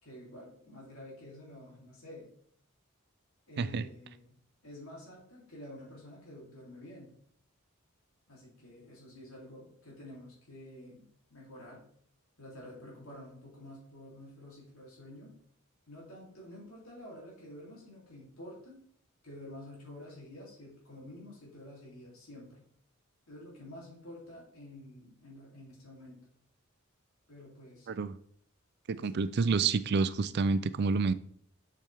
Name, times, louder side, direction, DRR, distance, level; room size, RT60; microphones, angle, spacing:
voice 1, 0.0-2.3 3.5-4.4 4.6-7.1 8.3-11.9 12.4-15.4 15.9-18.8 19.2-22.6 23.3-26.2 27.3-27.9 28.9-29.6, left 1 dB, 85° left, 3.2 m, -49 dB
voice 2, 27.9-28.2 28.9-31.1, right 4 dB, 50° right, 0.4 m, -28 dB
7.5 x 7.0 x 3.5 m
head